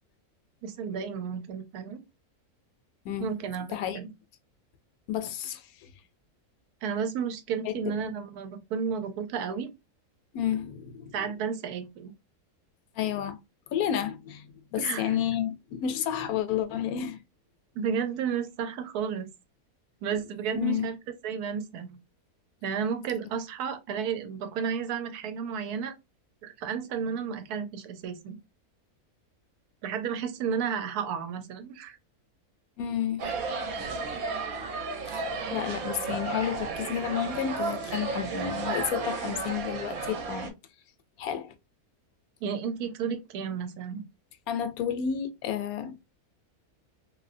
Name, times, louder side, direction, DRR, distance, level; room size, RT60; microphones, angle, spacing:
voice 1, 0.6-2.0 3.2-4.1 6.8-9.7 11.1-12.1 14.8-15.1 17.7-19.3 20.0-21.0 21.2-22.0 22.6-26.0 26.4-28.4 29.8-32.0 42.4-44.0, right 7 dB, 90° right, 1.2 m, -32 dB
voice 2, 3.0-3.4 3.7-4.0 5.1-5.9 7.6-7.9 10.3-11.1 13.0-13.4 13.7-17.2 20.5-20.9 32.8-33.3 35.5-40.5 41.2-41.5 44.5-46.0, left 9 dB, 75° left, 1.0 m, -31 dB
sound 1, 33.2-40.5, right 4 dB, 70° right, 1.1 m, -33 dB
3.1 x 2.7 x 2.4 m
omnidirectional pair, 1.6 m